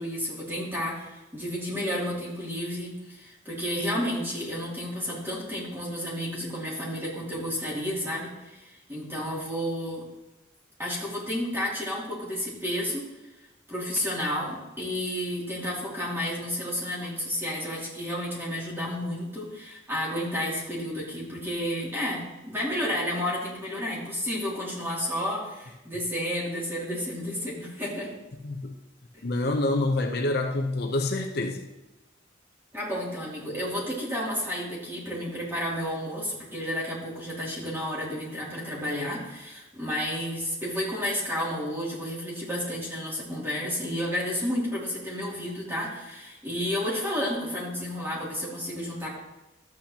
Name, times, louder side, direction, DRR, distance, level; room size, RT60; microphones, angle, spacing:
voice 1, 0.0-10.0 10.8-13.0 13.7-28.1 29.1-29.2 32.7-49.1, equal, 10° right, 2.7 m, -31 dB
voice 2, 28.4-28.7 29.2-31.7, left 2 dB, 55° left, 0.7 m, -27 dB
13.0 x 8.4 x 2.9 m
head